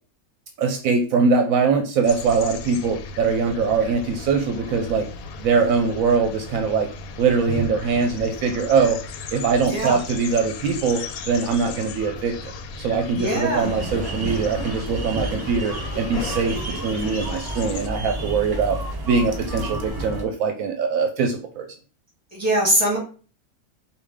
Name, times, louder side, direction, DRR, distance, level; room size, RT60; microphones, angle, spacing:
voice 1, 0.6-5.1 5.4-6.9 7.2-9.0 9.3-12.5 12.8-18.8 19.1-21.7, right 5 dB, 75° right, 4 dB, 1.0 m, -22 dB
sound 1, 2.0-17.9, left 3 dB, 85° left, 1.1 m, -35 dB
voice 2, 9.7-10.0 13.1-13.7 22.3-23.0, right 1 dB, 10° right, -4 dB, 2.5 m, -22 dB
sound 2, 13.6-20.2, right 1 dB, 30° right, 0.4 m, -31 dB
4.9 x 2.6 x 3.5 m, 0.38 s
omnidirectional pair, 1.5 m